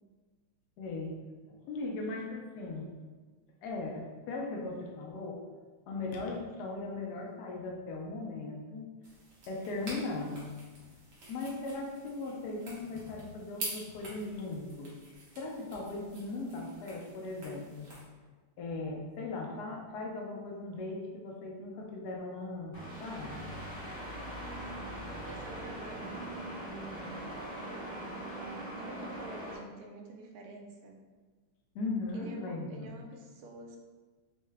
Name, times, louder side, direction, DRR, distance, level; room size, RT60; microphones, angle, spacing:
voice 1, 0.8-1.2 1.5-2.9 3.6-5.4 5.9-8.9 9.5-10.5 11.3-14.9 15.4-17.9 18.6-23.5 31.7-32.9, left 3 dB, 75° left, -1 dB, 0.9 m, -38 dB
sound 1, 9.0-18.0, right 2 dB, 50° right, 1.1 m, -47 dB
sound 2, 22.7-29.6, right 1 dB, 35° left, 0.6 m, -41 dB
voice 2, 25.3-26.2 27.3-27.9 28.7-31.0 32.1-33.8, right 2 dB, 80° right, 1 dB, 1.4 m, -48 dB
4.5 x 2.2 x 3.3 m, 1.4 s
omnidirectional pair, 2.4 m